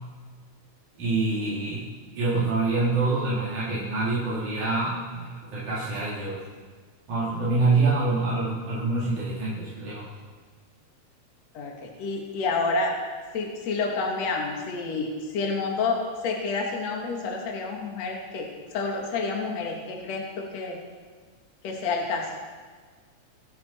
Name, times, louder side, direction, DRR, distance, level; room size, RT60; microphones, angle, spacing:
voice 1, 1.0-1.9 2.1-6.4 7.1-10.0, right 3 dB, 80° right, -11 dB, 5.3 m, -26 dB
voice 2, 11.5-12.9 13.3-16.0 16.2-20.8 21.6-22.3, left 4 dB, 65° left, 0 dB, 2.8 m, -29 dB
26.5 x 9.7 x 4.4 m, 1.5 s
omnidirectional pair, 3.4 m